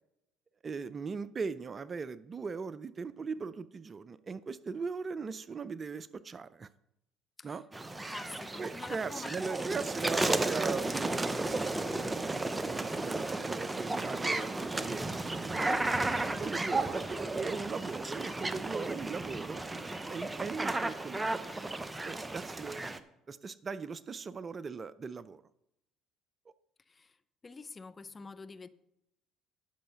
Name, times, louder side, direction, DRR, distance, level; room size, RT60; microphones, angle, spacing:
voice 1, 0.6-6.7 7.4-7.6 8.6-12.4 12.8-15.9 16.4-19.7 20.1-21.5 22.0-22.9 23.3-25.4, right 5 dB, 35° right, 0.5 m, -39 dB
sound 1, 7.7-23.0, right 2 dB, 15° right, 0.8 m, -34 dB
voice 2, 8.0-9.7 10.0-10.2 26.9-27.1 27.4-28.7, left 4 dB, 30° left, 0.6 m, -47 dB
10.5 x 6.5 x 5.7 m
hypercardioid pair, 60°, 0 cm